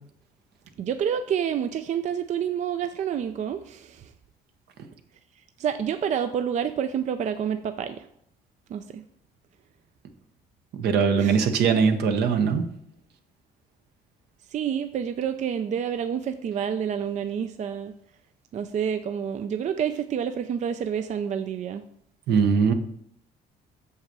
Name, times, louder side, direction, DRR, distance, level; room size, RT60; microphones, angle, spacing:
voice 1, 0.8-4.1 5.6-8.1 8.7-9.0 11.2-11.4 14.5-17.9 18.5-21.8, right 8 dB, 45° right, 9 dB, 0.5 m, -28 dB
voice 2, 10.7-12.7 22.3-22.7, right 6 dB, 75° right, 7 dB, 1.1 m, -21 dB
6.7 x 5.6 x 6.0 m, 0.70 s
cardioid pair, 110°, 17 cm